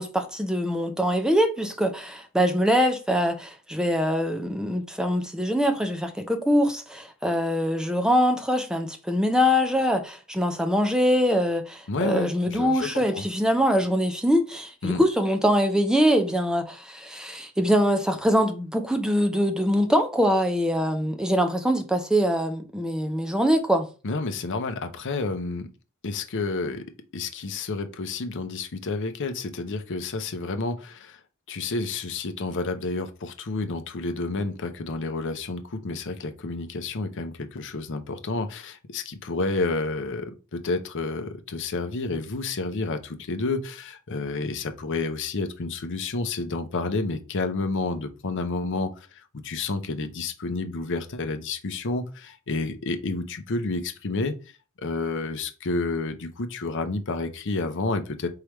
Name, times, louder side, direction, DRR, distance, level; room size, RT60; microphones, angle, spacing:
voice 1, 0.0-23.8, equal, 5° right, 0.6 m, -23 dB
voice 2, 11.9-13.2 14.8-15.0 24.0-25.7 26.0-26.9 27.1-31.2 31.5-49.1 49.4-54.3 54.8-58.3, left 3 dB, 60° left, 0.7 m, -30 dB
4.6 x 3.4 x 3.1 m
head